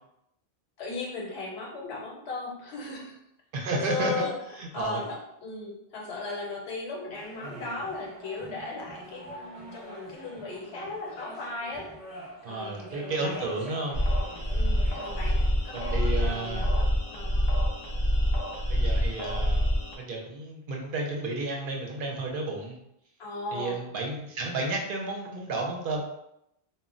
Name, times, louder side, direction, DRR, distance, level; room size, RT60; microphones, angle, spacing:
voice 1, 0.8-3.2 3.7-11.9 12.5-13.6 14.5-17.5 23.2-23.8, left 3 dB, 80° left, -1 dB, 0.9 m, -37 dB
voice 2, 3.5-4.3 4.6-5.0 7.4-7.8 12.4-14.0 15.7-16.7 18.7-19.6 20.0-22.8 23.5-26.0, right 2 dB, 65° right, 0 dB, 0.7 m, -32 dB
sound 1, 7.1-15.5, equal, ahead, 0.8 m, -46 dB
sound 2, 13.9-20.0, equal, 40° left, 0.4 m, -26 dB
2.1 x 2.1 x 3.6 m, 0.81 s
omnidirectional pair, 1.1 m